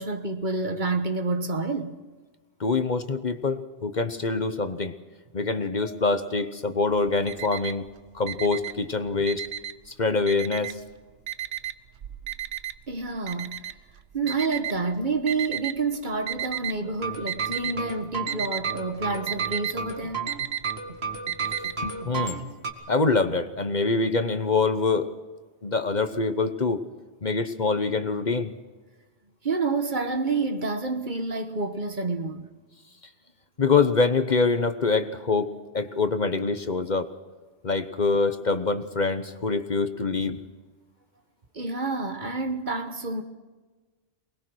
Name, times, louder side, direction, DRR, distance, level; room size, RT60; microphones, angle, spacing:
voice 1, 0.0-2.0 12.9-13.8 14.1-20.2 29.4-32.5 41.5-43.2, right 3 dB, 45° right, 1.4 m, -28 dB
voice 2, 2.6-4.9 5.3-7.9 8.1-9.4 10.0-10.7 21.8-22.4 22.9-25.1 25.6-26.8 27.2-28.5 33.6-37.1 37.6-40.4, left 4 dB, 45° left, 1.1 m, -25 dB
Alarm, 6.9-7.9 8.2-9.9 10.3-10.9 11.3-15.7 16.3-16.9 17.2-17.8 18.1-21.7, right 11 dB, 85° right, 1.1 m, -33 dB
sound 1, 16.8-22.7, right 4 dB, 65° right, 2.4 m, -33 dB
24.0 x 20.5 x 6.3 m
omnidirectional pair, 1.1 m